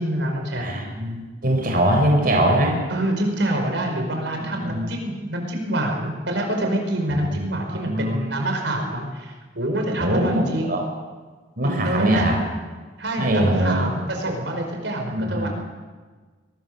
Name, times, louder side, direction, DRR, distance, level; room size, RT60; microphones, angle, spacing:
voice 1, 0.0-0.7 2.9-10.8 11.6-12.3 13.0-15.5, right 1 dB, 75° right, 3 dB, 5.1 m, -26 dB
voice 2, 0.6-2.7 4.4-4.9 7.1-7.3 7.7-8.2 10.0-10.8 11.6-12.4 13.2-13.9 15.1-15.5, right 1 dB, 55° right, 1 dB, 4.3 m, -22 dB
23.5 x 20.0 x 6.9 m, 1.4 s
head